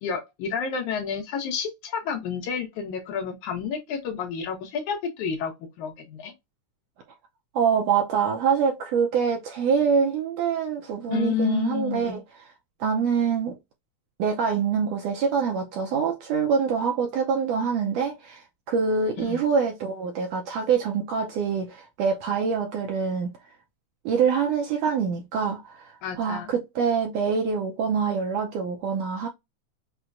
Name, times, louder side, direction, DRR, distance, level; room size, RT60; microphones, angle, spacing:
voice 1, 0.0-6.3 11.1-12.2 19.2-19.4 26.0-26.5, left 7 dB, 75° left, 2.4 m, -30 dB
voice 2, 7.5-12.2 12.8-13.6 14.2-23.3 24.0-29.3, right 6 dB, 75° right, 1.6 m, -25 dB
6.1 x 2.1 x 2.5 m
omnidirectional pair, 3.5 m